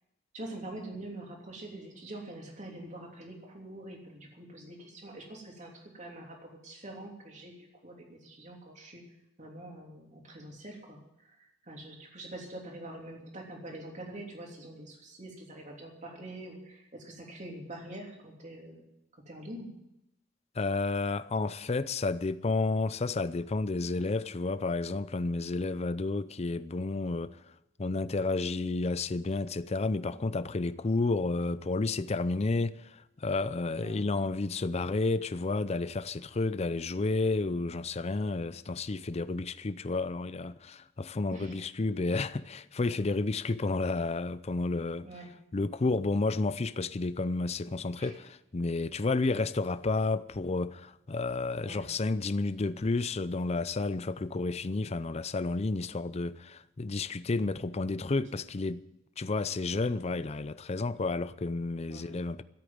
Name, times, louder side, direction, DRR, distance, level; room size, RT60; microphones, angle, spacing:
voice 1, 0.3-9.0 9.4-18.8 19.2-19.7 33.7-34.0 41.3-41.6 45.0-45.3 48.0-48.2 51.6-51.8 61.9-62.1, right 1 dB, 40° right, 3.2 m, -45 dB
voice 2, 20.6-27.4 27.8-45.1 45.5-58.8 59.2-62.4, left 3 dB, 35° left, 0.5 m, -31 dB
13.5 x 8.5 x 9.5 m
head